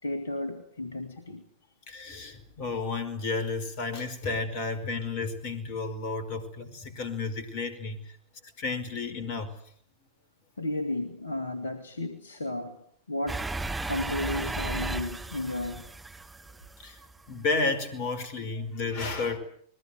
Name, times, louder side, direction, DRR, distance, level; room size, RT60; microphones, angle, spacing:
voice 1, 0.0-1.5 10.6-12.8 13.1-15.9, left 2 dB, 70° left, 8 dB, 2.4 m, -33 dB
voice 2, 1.9-8.0 8.6-9.5 16.8-17.0 17.3-19.4, left 3 dB, 45° left, 13 dB, 5.1 m, -32 dB
sound 1, 13.3-17.2, right 2 dB, 10° right, 2.5 m, -35 dB
29.5 x 22.0 x 8.0 m, 0.64 s
figure-of-eight pair, 90°, 0 cm